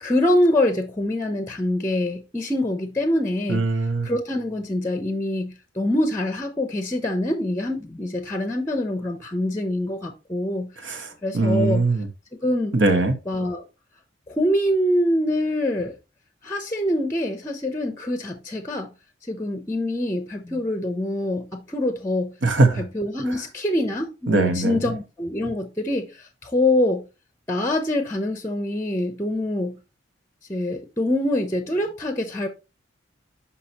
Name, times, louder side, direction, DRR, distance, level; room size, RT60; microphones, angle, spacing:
voice 1, 0.0-3.7 4.0-11.8 12.4-12.7 13.3-13.6 14.3-15.9 16.4-18.9 19.3-22.3 22.8-26.1 26.4-27.0 27.5-29.8 30.5-32.5, left 1 dB, 15° left, 0.6 m, -25 dB
voice 2, 3.5-4.1 10.8-11.1 11.3-12.1 12.7-13.2 22.4-22.8 24.3-24.8, right 2 dB, 70° right, 1.2 m, -20 dB
6.1 x 5.7 x 2.8 m
head